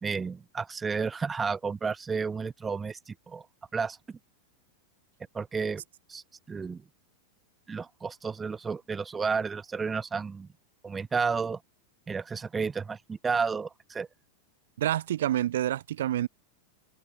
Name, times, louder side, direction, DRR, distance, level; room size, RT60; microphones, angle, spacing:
voice 1, 0.0-3.4 3.7-4.2 5.3-5.8 6.1-6.8 7.7-10.5 10.8-11.6 12.1-14.1, right 5 dB, 10° right, 1.9 m, -32 dB
voice 2, 14.8-16.3, right 12 dB, 85° right, 1.3 m, -27 dB
supercardioid pair, 160°, 0 cm